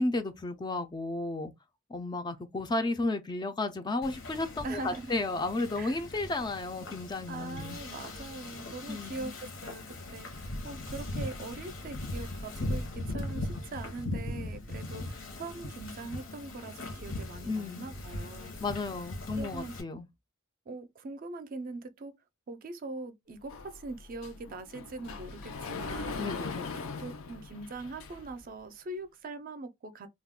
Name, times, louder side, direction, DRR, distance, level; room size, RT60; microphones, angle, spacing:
voice 1, 0.0-1.5 1.9-7.8 8.9-9.3 17.4-17.9 18.6-20.1 26.2-26.6, left 2 dB, 20° left, 0.4 m, -33 dB
Wind / Ocean, 4.0-19.8, left 1 dB, 70° left, 0.8 m, -39 dB
voice 2, 4.6-5.1 5.8-6.0 7.3-18.5 19.4-19.7 20.7-22.1 22.5-26.2 26.6-30.1, right 2 dB, 45° right, 0.4 m, -42 dB
Sliding door, 23.5-28.5, left 4 dB, 85° left, 0.5 m, -40 dB
2.3 x 2.2 x 3.5 m
head